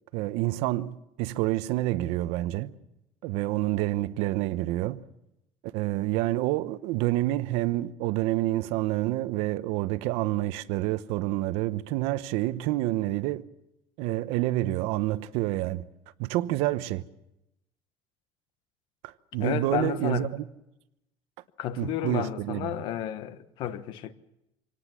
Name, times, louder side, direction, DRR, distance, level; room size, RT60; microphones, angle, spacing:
voice 1, 0.1-2.7 3.2-5.0 5.6-13.4 14.0-15.9 16.2-17.0 19.0-20.4 21.8-22.7, right 16 dB, 75° right, 0.9 m, -28 dB
voice 2, 19.4-20.3 21.6-24.1, left 11 dB, 50° left, 1.2 m, -31 dB
25.5 x 18.0 x 7.5 m
cardioid pair, 175°, 11 cm